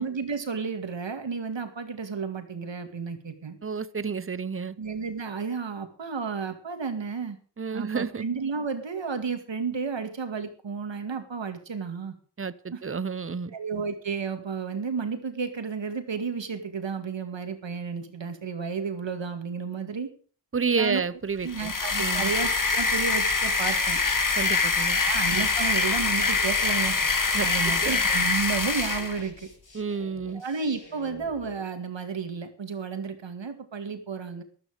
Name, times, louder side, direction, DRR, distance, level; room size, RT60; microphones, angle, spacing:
voice 1, 0.0-3.6 4.8-7.4 7.7-12.1 12.7-12.8 13.5-20.1 20.7-21.0 21.4-24.0 25.0-27.0 27.4-29.5 30.3-34.4, right 5 dB, 80° right, 7 dB, 2.3 m, -32 dB
voice 2, 3.6-4.8 7.6-8.2 12.4-13.5 20.5-21.7 22.0-22.3 24.4-25.0 27.3-28.0 29.7-30.4, right 5 dB, 30° right, 16 dB, 0.8 m, -30 dB
sound 1, 21.5-29.2, left 4 dB, 45° left, 1.8 m, -24 dB
sound 2, 26.1-31.6, left 1 dB, 85° left, 6.8 m, -47 dB
13.0 x 12.5 x 5.0 m, 0.42 s
wide cardioid pair, 75°, 44 cm